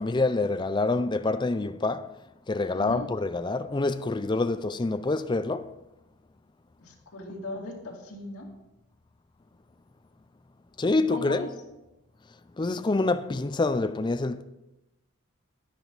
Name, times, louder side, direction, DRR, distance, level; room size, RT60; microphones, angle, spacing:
voice 1, 0.0-2.2 2.5-5.8 10.8-11.5 12.6-14.4, left 3 dB, 20° left, 0.4 m, -26 dB
voice 2, 2.7-3.1 6.8-8.5 10.9-11.5, left 2 dB, 90° left, 2.7 m, -38 dB
11.0 x 10.5 x 4.0 m
head